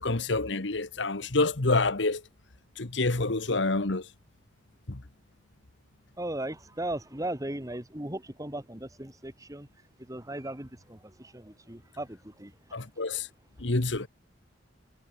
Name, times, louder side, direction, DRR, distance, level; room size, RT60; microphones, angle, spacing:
voice 1, 0.0-2.2 2.8-4.1 4.9-5.0 12.7-13.3 13.6-14.1, left 3 dB, 65° left, 1.5 m, -27 dB
voice 2, 6.2-9.7 10.1-12.5 13.1-13.2, right 1 dB, 15° right, 2.2 m, -37 dB
head